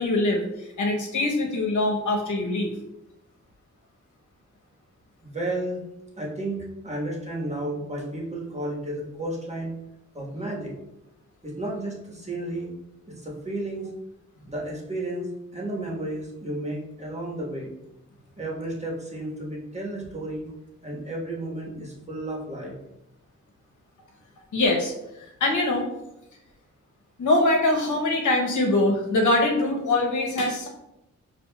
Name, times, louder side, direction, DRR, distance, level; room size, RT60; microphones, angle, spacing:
voice 1, 0.0-2.7 24.5-25.9 27.2-30.7, left 2 dB, 85° left, 1 dB, 0.9 m, -23 dB
voice 2, 5.2-5.8 6.2-9.7 10.1-10.7 11.4-12.7 13.1-13.9 14.5-17.7 18.4-20.5 20.8-22.7, right 1 dB, 20° right, -3 dB, 1.4 m, -32 dB
6.9 x 2.5 x 2.3 m, 0.88 s
cardioid pair, 65°, 29 cm